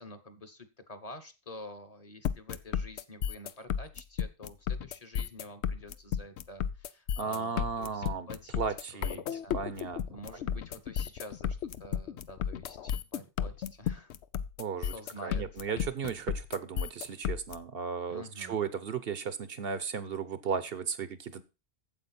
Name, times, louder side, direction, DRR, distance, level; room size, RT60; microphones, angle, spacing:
voice 1, 0.0-8.6 8.9-9.6 10.1-14.1 14.9-15.4 18.1-18.6, left 1 dB, 35° left, 8 dB, 1.2 m, -48 dB
sound 1, 2.3-17.6, left 8 dB, 85° left, 0.9 m, -33 dB
voice 2, 7.2-8.3 8.6-9.2 9.5-10.0 14.6-14.9 15.2-21.4, right 6 dB, 65° right, 13 dB, 1.0 m, -35 dB
8.5 x 7.7 x 4.2 m, 0.28 s
omnidirectional pair, 1.1 m